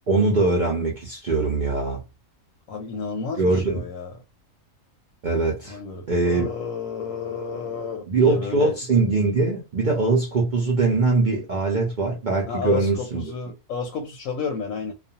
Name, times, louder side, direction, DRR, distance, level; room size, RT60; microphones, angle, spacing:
voice 1, 0.0-2.0 3.4-3.8 5.2-5.8 6.1-6.5 8.1-13.2, right 3 dB, 70° right, 0.4 m, -22 dB
voice 2, 2.7-4.1 5.7-8.7 12.5-14.9, left 5 dB, 70° left, 0.9 m, -31 dB
2.4 x 2.2 x 2.7 m
omnidirectional pair, 1.6 m